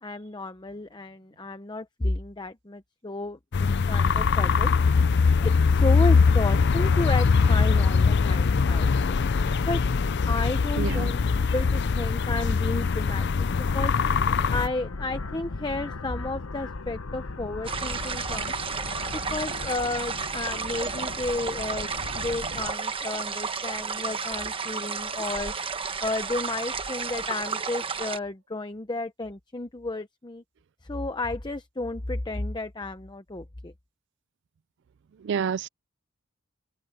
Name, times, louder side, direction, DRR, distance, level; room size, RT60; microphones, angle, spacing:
voice 1, 0.0-4.7 5.3-9.1 9.7-9.8 10.2-13.3 13.7-13.9 14.5-18.5 19.1-21.9 22.2-25.5 26.0-30.4 30.8-33.7, left 2 dB, 20° left, 0.8 m, -32 dB
sound 1, 3.5-14.7, left 5 dB, 55° left, 0.5 m, -22 dB
voice 2, 10.8-11.1 35.2-35.7, right 7 dB, 60° right, 0.4 m, -28 dB
sound 2, 13.5-22.7, left 3 dB, 90° left, 1.0 m, -38 dB
sound 3, 17.6-28.2, right 5 dB, 25° right, 1.1 m, -32 dB
head